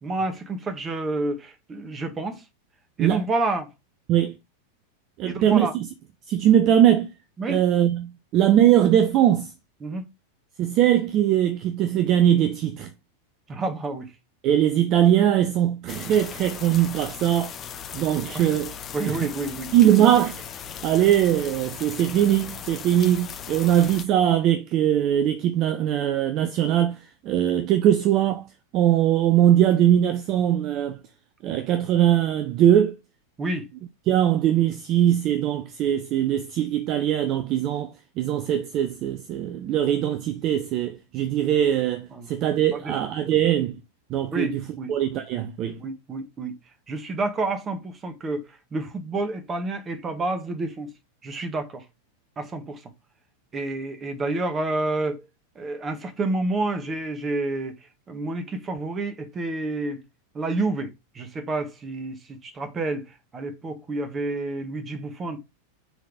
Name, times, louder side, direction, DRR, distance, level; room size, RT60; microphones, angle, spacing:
voice 1, 0.0-2.4 3.0-3.7 5.2-5.7 7.4-7.6 9.8-10.0 13.5-14.1 18.3-18.5 18.9-19.7 33.4-33.7 42.1-42.3 42.7-42.9 44.3-45.2 45.8-46.5 46.9-48.4 48.7-50.9 51.2-51.8 52.4-52.8 53.5-55.2 55.5-57.8 58.1-60.0 60.3-60.9 61.1-63.1 63.3-65.4, right 2 dB, 20° right, 1.5 m, -29 dB
voice 2, 5.2-5.9 6.3-7.1 7.5-9.5 10.6-12.9 14.4-17.5 17.9-18.7 19.1-19.2 19.7-20.4 20.8-27.0 27.2-28.4 28.7-31.0 31.4-32.9 34.1-43.8 44.1-44.6 44.9-45.8, right 11 dB, 35° right, 0.6 m, -21 dB
sound 1, 15.9-24.0, left 8 dB, 25° left, 0.9 m, -38 dB
6.3 x 3.9 x 4.9 m
figure-of-eight pair, 90°, 0 cm